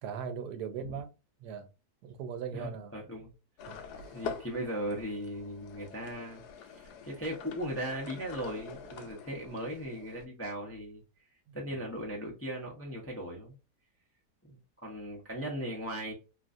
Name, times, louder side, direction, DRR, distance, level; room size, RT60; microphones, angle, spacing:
voice 1, 0.0-1.1 1.4-1.7 2.0-2.9 3.7-4.1 11.5-11.8, right 7 dB, 85° right, 1.2 m, -40 dB
voice 2, 2.5-3.3 3.7-11.0 11.5-13.6 14.4-16.1, equal, 20° left, 0.4 m, -38 dB
sound 1, 3.6-10.3, left 5 dB, 80° left, 1.1 m, -45 dB
3.0 x 2.4 x 2.5 m
omnidirectional pair, 1.7 m